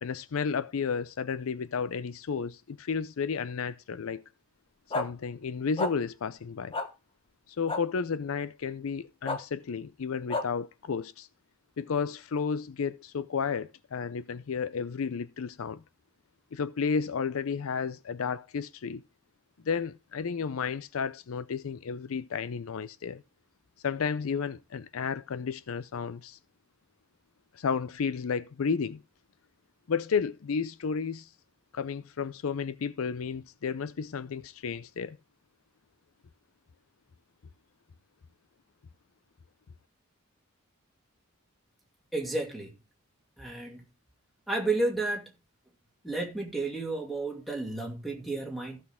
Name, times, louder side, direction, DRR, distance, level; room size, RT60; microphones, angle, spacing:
voice 1, 0.0-4.2 4.9-6.7 7.5-11.3 11.8-15.8 16.5-19.0 19.6-23.2 23.8-26.4 27.5-29.0 29.9-31.3 31.7-35.2, left 6 dB, 75° left, 0.5 m, -32 dB
sound 1, 4.9-5.1 5.8-5.9 6.7-6.9 7.7-7.8 9.2-9.4 10.3-10.4, left 2 dB, 25° left, 1.2 m, -29 dB
voice 2, 42.1-42.8 43.4-43.8 44.5-45.3 46.0-48.8, right 2 dB, ahead, 2.4 m, -32 dB
15.0 x 6.2 x 3.6 m
head